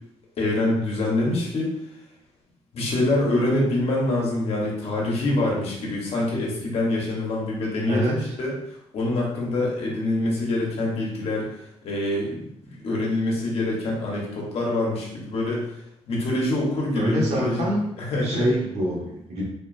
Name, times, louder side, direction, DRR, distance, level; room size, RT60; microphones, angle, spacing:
voice 1, 0.4-1.7 2.7-12.5 12.8-15.6 16.1-17.7 18.0-18.5, left 2 dB, 65° left, -3 dB, 1.2 m, -25 dB
voice 2, 7.9-8.4 16.9-17.8 18.2-19.4, equal, 80° right, -4 dB, 1.4 m, -25 dB
4.1 x 3.0 x 2.7 m, 0.78 s
cardioid pair, 140°, 11 cm